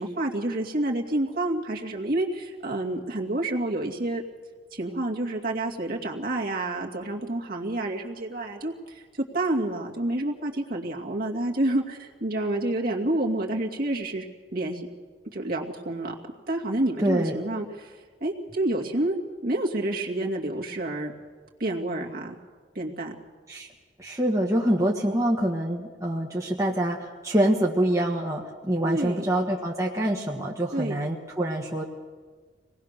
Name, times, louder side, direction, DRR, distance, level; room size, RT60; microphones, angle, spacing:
voice 1, 0.0-4.2 4.7-14.3 14.5-14.9 15.3-16.1 16.5-19.2 19.4-21.1 21.6-22.3 22.7-23.1 28.8-29.2 30.7-31.0, right 1 dB, 50° right, 0 dB, 2.5 m, -29 dB
voice 2, 17.0-17.4 23.5-23.7 24.0-31.8, right 1 dB, 15° right, -1 dB, 1.5 m, -25 dB
25.0 x 19.0 x 6.7 m, 1.5 s
head